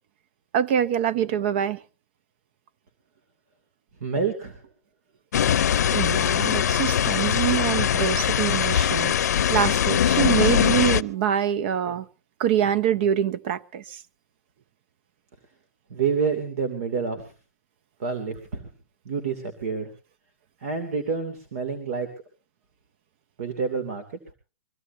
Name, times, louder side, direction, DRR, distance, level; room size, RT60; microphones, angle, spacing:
voice 1, 0.5-1.8 5.9-12.1 12.4-14.0, right 10 dB, 45° right, 0.7 m, -25 dB
voice 2, 4.0-4.6 15.9-17.3 18.0-18.7 19.0-19.9 20.6-22.1 23.4-24.0, right 5 dB, 65° right, 2.7 m, -28 dB
sound 1, 5.3-11.0, left 9 dB, 85° left, 0.6 m, -22 dB
24.0 x 15.5 x 2.7 m
hypercardioid pair, 160°, 9 cm